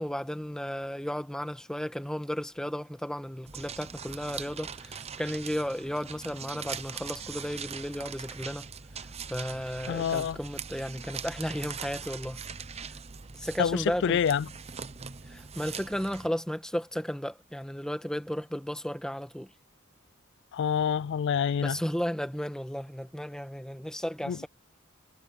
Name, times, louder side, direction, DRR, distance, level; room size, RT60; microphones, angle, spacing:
voice 1, 0.0-8.7 9.3-12.4 13.4-14.2 15.3-19.5 21.6-24.5, equal, 5° left, 1.4 m, -34 dB
sound 1, 3.5-16.3, right 6 dB, 30° right, 0.7 m, -41 dB
voice 2, 9.9-10.4 13.6-14.5 20.5-21.8 24.3-24.4, left 7 dB, 60° left, 0.3 m, -27 dB
head